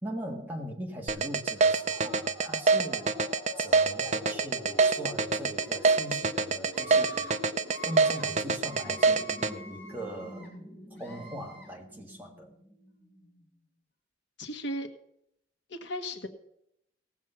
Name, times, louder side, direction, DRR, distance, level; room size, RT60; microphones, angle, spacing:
voice 1, 0.0-3.2 3.6-7.3 7.8-10.5 11.0-12.5, equal, 10° right, 0 dB, 1.8 m, -40 dB
sound 1, 1.1-9.5, right 4 dB, 35° right, 0.6 m, -25 dB
sound 2, 1.6-13.4, left 1 dB, 45° left, 3.2 m, -47 dB
Screaming, 5.6-6.2 6.7-7.3 7.6-8.3 8.6-10.5 11.0-11.7, equal, 10° left, 6.3 m, -45 dB
voice 2, 14.4-14.9 15.7-16.3, equal, 75° left, 7 dB, 1.3 m, -35 dB
17.0 x 7.4 x 5.7 m, 0.77 s
head